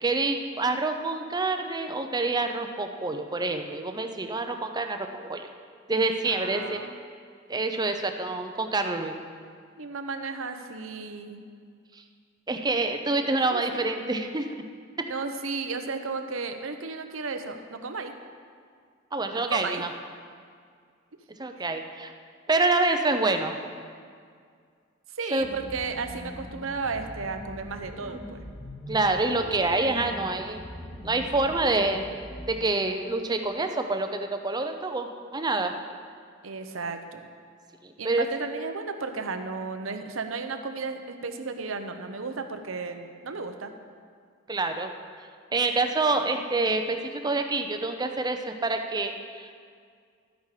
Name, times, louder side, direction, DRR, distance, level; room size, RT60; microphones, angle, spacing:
voice 1, 0.0-5.5 5.9-6.8 7.5-9.1 12.5-14.5 19.1-19.9 21.4-22.1 22.5-23.6 25.3-25.5 28.9-30.6 31.0-32.1 32.5-35.7 37.8-38.3 44.5-44.9 45.5-49.6, right 2 dB, 20° right, 6 dB, 0.7 m, -27 dB
voice 2, 6.3-6.9 9.8-11.4 13.5-13.8 15.0-18.1 19.4-19.8 25.1-28.4 36.4-37.2 38.0-43.7, right 4 dB, 75° right, 7 dB, 0.9 m, -34 dB
sound 1, 25.4-32.5, equal, 15° left, 1.3 m, -42 dB
13.0 x 9.3 x 4.9 m, 2.1 s
head